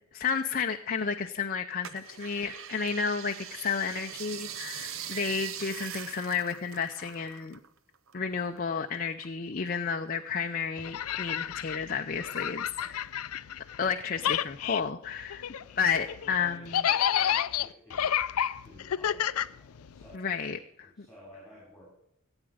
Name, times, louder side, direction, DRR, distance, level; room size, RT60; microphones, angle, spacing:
voice 1, 0.1-7.6 8.1-12.7 13.8-15.4 15.8-16.6 20.1-21.1, left 6 dB, 40° left, 4 dB, 0.6 m, -31 dB
sound 1, 1.8-7.7 8.0-9.3 9.7-10.5 11.0-11.1, right 9 dB, 65° right, 0.8 m, -42 dB
sound 2, 10.8-13.9 14.2-20.2, left 10 dB, 85° left, 0.4 m, -30 dB
voice 2, 12.8-13.2 13.8-14.0 15.6-18.1 18.6-20.3 20.8-21.9, equal, ahead, -5 dB, 5.5 m, -53 dB
16.5 x 8.9 x 4.9 m, 0.76 s
head